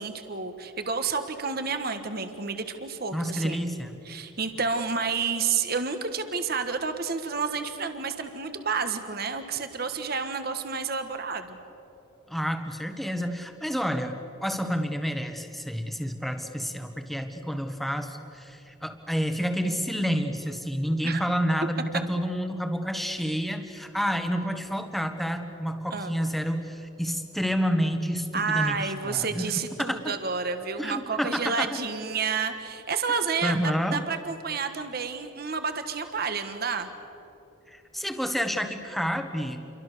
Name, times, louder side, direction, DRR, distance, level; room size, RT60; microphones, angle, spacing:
voice 1, 0.0-3.6 4.0-11.6 21.0-21.2 25.9-26.1 28.3-33.6 33.9-36.9, right 5 dB, 45° right, 8 dB, 1.5 m, -30 dB
voice 2, 3.1-4.0 12.3-29.5 29.8-30.1 30.8-31.8 33.4-34.0 37.7-39.6, equal, ahead, 6 dB, 1.5 m, -29 dB
29.0 x 23.5 x 6.8 m, 3.0 s
head